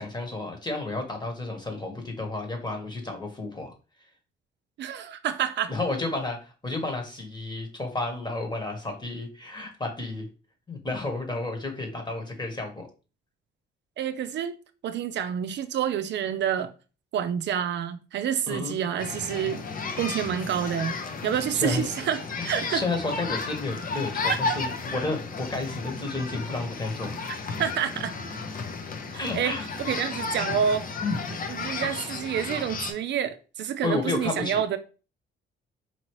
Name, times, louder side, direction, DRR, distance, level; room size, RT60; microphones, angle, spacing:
voice 1, 0.0-3.7 5.7-10.3 10.7-12.9 18.5-18.7 21.5-21.8 22.4-27.2 29.1-29.6 31.7-32.1 33.8-34.6, left 2 dB, 20° left, 1.3 m, -31 dB
voice 2, 4.8-5.7 14.0-14.5 14.8-16.7 17.1-19.6 20.0-22.8 24.3-24.6 27.6-28.1 29.1-30.9 31.3-34.8, right 9 dB, 65° right, 0.4 m, -28 dB
sound 1, 19.0-32.9, left 4 dB, 45° left, 0.7 m, -33 dB
4.4 x 2.8 x 3.0 m
cardioid pair, 90°, 20 cm